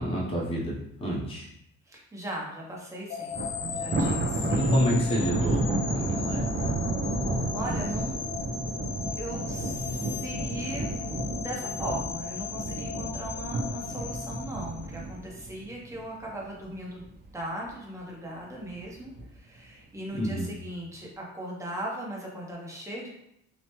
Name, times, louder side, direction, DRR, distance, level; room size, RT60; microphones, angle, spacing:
voice 1, 0.0-1.5 4.6-6.5 20.1-20.5, equal, 20° left, -4 dB, 0.7 m, -29 dB
voice 2, 1.9-3.4 3.7-4.9 7.5-8.5 9.1-10.9 11.4-17.1 17.3-23.1, right 1 dB, 10° right, -3 dB, 0.9 m, -38 dB
sound 1, 3.1-15.2, left 6 dB, 60° left, 0.4 m, -37 dB
Thunder, 3.3-16.6 17.0-17.3 17.7-17.8 18.7-19.2, right 2 dB, 35° right, 0.5 m, -31 dB
2.9 x 2.2 x 2.9 m, 0.77 s
cardioid pair, 90°, 30 cm